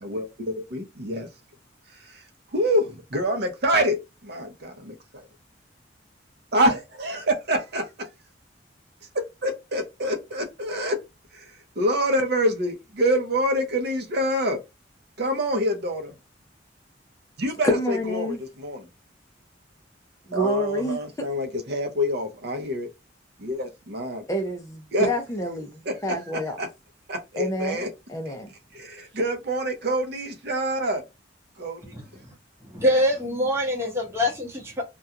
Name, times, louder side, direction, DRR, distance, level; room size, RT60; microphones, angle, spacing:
voice 1, 0.0-1.3 2.1-2.2 2.5-5.2 6.5-7.8 9.4-11.0 11.3-11.4 11.8-14.6 15.2-16.1 17.4-18.9 20.3-22.9 23.4-24.2 24.9-25.1 25.9-26.7 27.1-27.9 28.7-31.0 31.6-31.9, equal, 60° right, 0.6 m, -26 dB
voice 2, 17.6-18.4 20.3-21.0 24.3-26.6 27.4-27.8 28.1-28.5, equal, 15° left, 0.5 m, -27 dB
voice 3, 31.9-32.3 32.6-34.8, equal, 15° right, 0.9 m, -25 dB
2.4 x 2.2 x 2.7 m
head